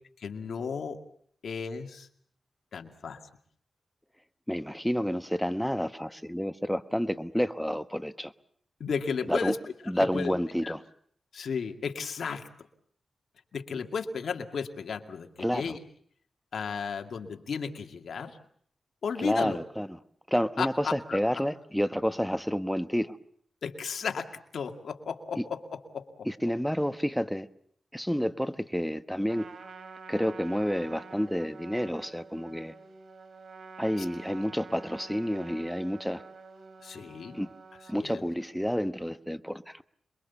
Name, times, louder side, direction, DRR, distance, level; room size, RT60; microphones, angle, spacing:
voice 1, 0.2-1.0 1.4-2.1 2.7-3.2 8.8-9.6 10.0-10.3 10.6-10.7 11.3-12.5 13.5-15.8 16.5-18.4 19.0-19.6 20.6-21.2 23.6-26.3 34.0-34.1 36.8-37.4 37.9-38.2, left 6 dB, 75° left, 2.3 m, -34 dB
voice 2, 4.5-8.3 9.3-9.5 9.9-10.8 15.4-15.8 19.2-20.0 20.3-23.2 25.4-25.5 26.2-27.5 27.9-29.5 30.1-32.7 33.8-36.2 37.3-37.5 37.9-39.8, equal, ahead, 1.1 m, -29 dB
Trumpet, 29.2-38.0, right 4 dB, 65° right, 3.1 m, -48 dB
27.0 x 22.5 x 7.1 m
cardioid pair, 75°, 0 cm